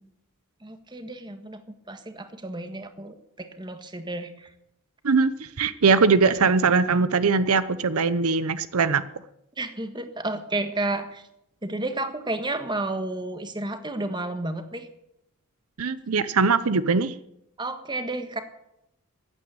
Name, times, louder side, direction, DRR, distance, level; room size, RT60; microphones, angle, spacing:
voice 1, 0.6-4.5 9.6-11.2 11.6-14.9 17.6-18.4, right 2 dB, 20° right, 8 dB, 1.5 m, -31 dB
voice 2, 5.0-9.0 15.8-17.1, right 4 dB, 80° right, 14 dB, 0.7 m, -21 dB
15.5 x 9.5 x 9.5 m, 0.81 s
head